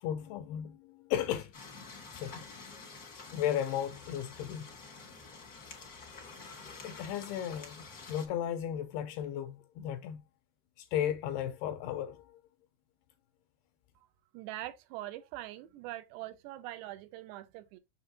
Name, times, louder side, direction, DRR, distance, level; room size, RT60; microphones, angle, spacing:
voice 1, 0.0-1.5 2.1-2.5 3.3-4.7 6.8-10.2 10.8-12.4, left 10 dB, 85° left, 2.3 m, -35 dB
sound 1, 1.5-8.3, left 4 dB, 55° left, 0.9 m, -49 dB
voice 2, 14.3-17.8, right 15 dB, 85° right, 2.8 m, -43 dB
6.9 x 6.6 x 2.7 m
omnidirectional pair, 4.9 m